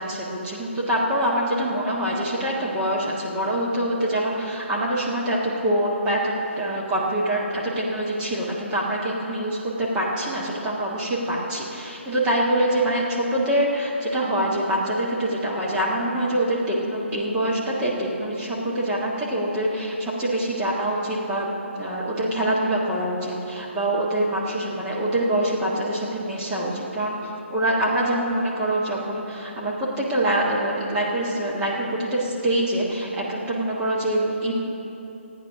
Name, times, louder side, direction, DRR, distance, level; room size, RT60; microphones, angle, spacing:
voice 1, 0.0-21.5 21.7-27.2 27.5-34.6, right 1 dB, 15° right, -6 dB, 1.6 m, -25 dB
14.0 x 9.1 x 5.9 m, 3.0 s
figure-of-eight pair, 145°, 7 cm